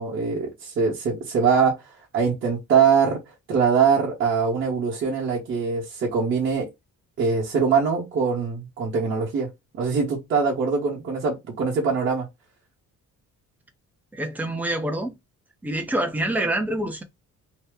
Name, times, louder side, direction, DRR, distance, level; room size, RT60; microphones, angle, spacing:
voice 1, 0.0-1.7 2.1-3.2 3.5-6.7 7.2-9.5 9.7-12.3, right 5 dB, 40° right, 1.0 m, -22 dB
voice 2, 14.1-15.1 15.6-17.0, right 1 dB, 5° right, 0.5 m, -26 dB
2.8 x 2.0 x 3.4 m
cardioid pair, 165°, 30 cm